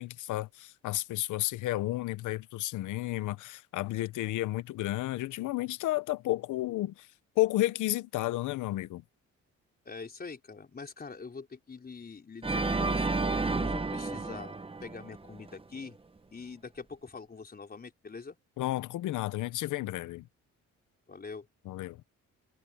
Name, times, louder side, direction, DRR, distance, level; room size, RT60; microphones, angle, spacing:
voice 1, 0.0-7.1 7.4-9.0 18.6-20.3 21.7-22.0, left 16 dB, 85° left, 1.0 m, -32 dB
voice 2, 9.9-13.1 13.6-14.5 14.8-16.0 16.3-18.4 21.1-21.5, left 4 dB, 30° left, 4.1 m, -44 dB
Organ, 12.4-15.5, right 3 dB, 20° right, 1.4 m, -31 dB
cardioid pair, 90°, 30 cm